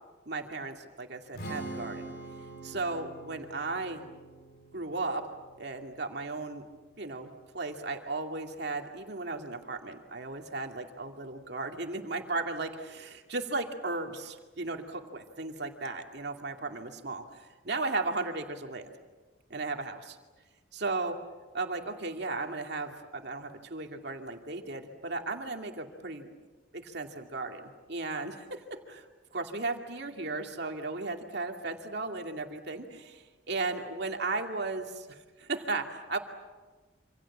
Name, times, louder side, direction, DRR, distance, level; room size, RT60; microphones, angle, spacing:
voice 1, 0.3-2.1 2.6-4.0 4.7-5.3 5.6-6.6 7.0-19.0 19.5-20.2 20.7-21.2 21.5-26.3 26.7-27.6 27.9-29.1 29.3-36.2, right 3 dB, 60° right, 3 dB, 2.5 m, -35 dB
Strum, 1.3-7.6, right 2 dB, 55° left, 4.6 m, -45 dB
27.0 x 26.5 x 7.4 m, 1.3 s
head